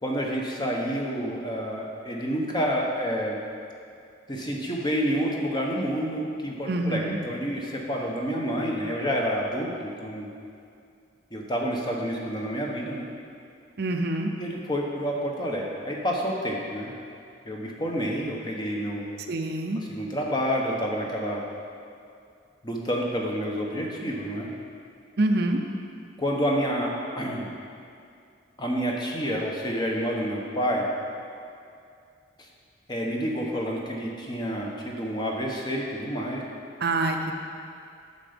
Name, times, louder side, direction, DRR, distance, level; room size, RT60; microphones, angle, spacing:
voice 1, 0.0-3.4 4.3-10.3 11.3-13.1 14.4-16.9 17.4-19.1 19.7-21.4 22.6-24.5 26.2-27.4 28.6-30.9 32.4-32.5 32.9-36.4, equal, 20° left, -1 dB, 1.1 m, -29 dB
voice 2, 6.7-7.2 13.8-14.3 19.3-19.8 25.2-25.6 36.8-37.4, right 2 dB, 55° right, 4 dB, 0.6 m, -25 dB
9.7 x 6.9 x 5.1 m, 2.4 s
head